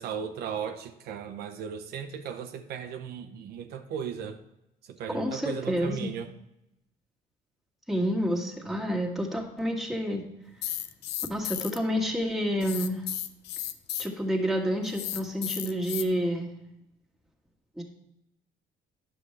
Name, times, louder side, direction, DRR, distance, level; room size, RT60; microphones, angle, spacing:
voice 1, 0.0-4.4 4.9-6.3, right 7 dB, 70° right, 5 dB, 0.7 m, -36 dB
voice 2, 5.1-6.1 7.9-10.2 11.3-13.0 14.0-16.5 17.8-17.9, equal, ahead, -1 dB, 1.7 m, -29 dB
sound 1, 10.6-11.8 12.6-14.1 14.8-16.0, left 12 dB, 75° left, 0.5 m, -34 dB
9.9 x 7.1 x 3.2 m, 0.87 s
cardioid pair, 110°, 17 cm